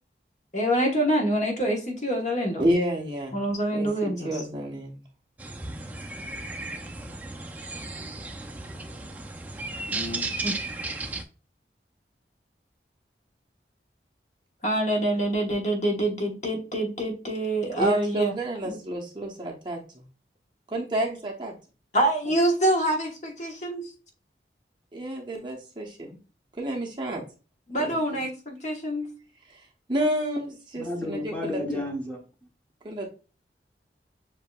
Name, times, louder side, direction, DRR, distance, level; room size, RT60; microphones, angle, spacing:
voice 1, 0.5-2.7 3.3-4.4 9.9-10.5 14.6-18.3 18.6-18.8 21.9-23.9 27.7-29.1, right 1 dB, 40° left, 1.1 m, -26 dB
voice 2, 2.6-3.4 3.7-5.0 17.8-19.8 20.7-21.5 24.9-26.2 26.6-27.3 27.7-28.2 29.5-29.6 29.9-31.6 32.8-33.1, right 1 dB, 25° right, 1.0 m, -30 dB
sound 1, 5.4-11.2, right 2 dB, 10° right, 0.4 m, -35 dB
voice 3, 30.8-32.2, left 1 dB, 10° left, 1.0 m, -31 dB
7.1 x 2.8 x 2.3 m
head